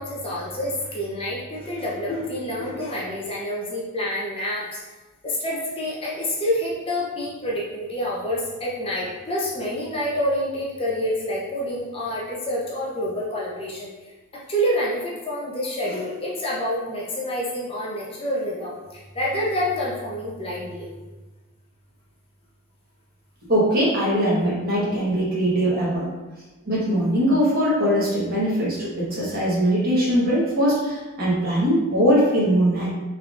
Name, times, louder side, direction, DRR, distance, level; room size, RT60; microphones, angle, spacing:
voice 1, 0.0-4.8 5.2-20.9, equal, 25° left, -5 dB, 0.5 m, -28 dB
voice 2, 23.5-26.1 26.6-32.9, equal, 40° right, -7 dB, 1.2 m, -21 dB
3.6 x 3.2 x 2.4 m, 1.2 s
head